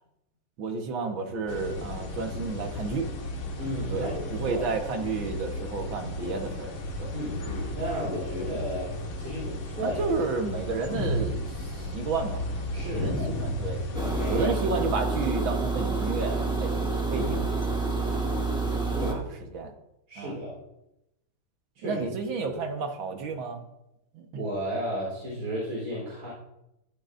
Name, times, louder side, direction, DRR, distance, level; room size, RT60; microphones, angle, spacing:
voice 1, 0.6-3.1 3.9-7.2 9.8-13.8 14.3-17.6 18.1-18.2 19.1-19.2 19.5-19.7 20.2-20.3 21.8-23.6 24.1-24.4, right 4 dB, 75° right, 4 dB, 2.1 m, -32 dB
sound 1, 1.5-14.5, left 1 dB, 80° left, 2.4 m, -34 dB
voice 2, 3.6-4.6 7.1-8.9 9.2-10.1 12.7-13.4 13.9-14.6 17.2-17.3 18.9-19.2 20.1-20.6 21.8-22.0 24.4-26.3, equal, 50° right, -6 dB, 4.5 m, -33 dB
sound 2, 13.9-19.1, right 3 dB, 5° right, 1.3 m, -28 dB
15.0 x 12.5 x 2.6 m, 0.87 s
omnidirectional pair, 2.2 m